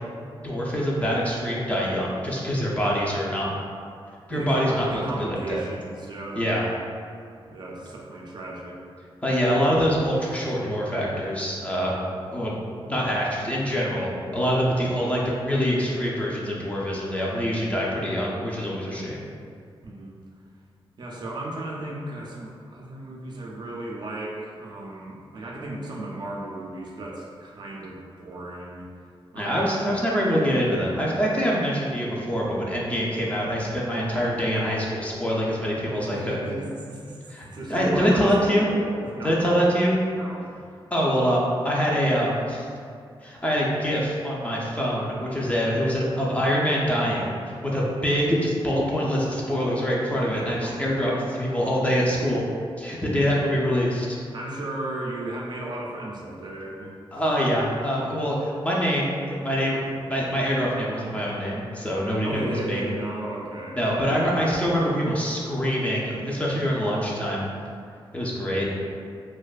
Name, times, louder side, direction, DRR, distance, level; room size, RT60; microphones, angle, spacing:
voice 1, 0.4-3.5 4.3-5.6 6.3-6.7 9.2-12.0 12.3-19.2 29.3-36.4 37.3-38.7 39.2-39.9 40.9-42.7 43.2-52.4 52.8-54.2 57.1-62.8 63.7-67.5 68.1-68.7, equal, 15° left, -5 dB, 0.4 m, -25 dB
voice 2, 4.3-6.5 7.5-8.8 19.8-20.2 21.0-28.9 29.3-29.6 36.0-37.2 37.5-39.5 40.2-40.6 50.1-50.9 54.3-57.2 62.2-64.1, right 2 dB, 50° right, -3 dB, 0.4 m, -35 dB
2.5 x 2.2 x 2.3 m, 2.3 s
wide cardioid pair, 95°, 10 cm